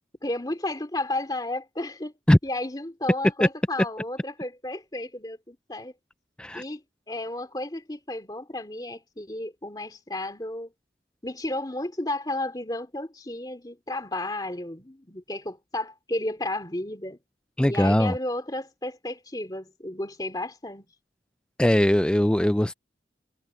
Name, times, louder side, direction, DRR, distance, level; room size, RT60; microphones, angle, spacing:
voice 1, 0.2-2.1 2.4-5.9 6.5-6.8 7.1-10.7 11.2-17.2 17.6-20.9, left 1 dB, 20° left, 2.5 m, -33 dB
voice 2, 17.6-18.2 21.6-22.7, left 1 dB, 5° left, 0.3 m, -20 dB
head